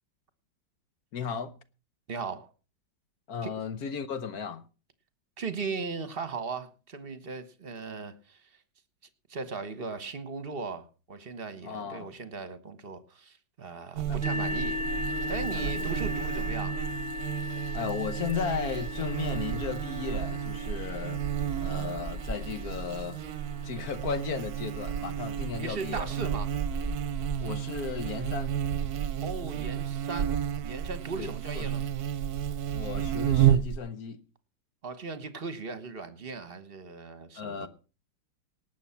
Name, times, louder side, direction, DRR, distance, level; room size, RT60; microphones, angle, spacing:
voice 1, 1.1-1.5 3.3-4.6 11.6-12.1 14.1-14.2 15.5-15.9 17.4-21.3 21.6-23.2 23.6-26.1 27.4-28.5 31.2-31.7 32.7-34.2 37.4-37.7, left 6 dB, 60° left, 1.3 m, -35 dB
voice 2, 2.1-2.5 3.4-3.5 5.4-8.4 9.3-14.8 15.3-16.8 25.6-26.5 29.2-30.3 30.6-31.8 34.8-37.7, right 4 dB, 35° right, 1.3 m, -37 dB
Buzz, 14.0-33.8, right 10 dB, 60° right, 1.2 m, -31 dB
sound 1, 14.2-25.7, left 3 dB, 5° left, 1.5 m, -38 dB
sound 2, 21.7-29.0, right 1 dB, 30° left, 2.5 m, -43 dB
18.5 x 7.5 x 5.8 m
omnidirectional pair, 2.0 m